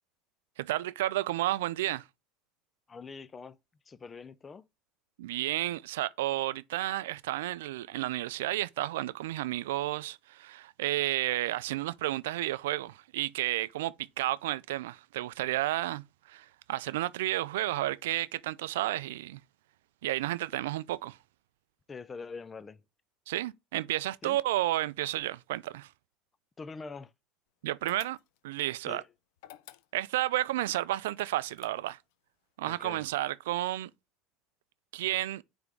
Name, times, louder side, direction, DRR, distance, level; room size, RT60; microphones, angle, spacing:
voice 1, 0.6-2.0 5.2-19.4 20.0-21.2 23.3-25.9 27.6-28.2 28.4-29.0 29.9-32.0 32.6-33.9 34.9-35.4, right 15 dB, 85° right, 0.3 m, -32 dB
voice 2, 2.9-3.6 3.9-4.7 21.9-22.8 24.2-24.4 26.6-27.1 28.9-29.1 32.7-33.1, left 4 dB, 25° left, 0.5 m, -44 dB
sound 1, 27.9-28.6 29.4-30.3 31.1-32.1, left 14 dB, 75° left, 0.5 m, -53 dB
9.4 x 3.5 x 3.4 m
supercardioid pair, 100°, 0 cm